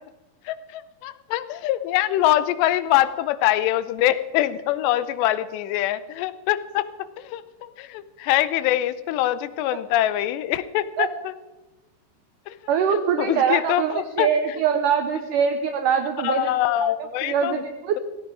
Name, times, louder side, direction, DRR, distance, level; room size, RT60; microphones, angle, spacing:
voice 1, 0.5-11.3 12.5-12.6 13.2-14.3 16.2-17.6, left 13 dB, 90° left, 14 dB, 2.9 m, -24 dB
voice 2, 12.7-16.5 16.8-16.9 17.2-18.0, right 7 dB, 85° right, 7 dB, 1.8 m, -23 dB
16.0 x 16.0 x 4.8 m, 1.1 s
omnidirectional pair, 4.8 m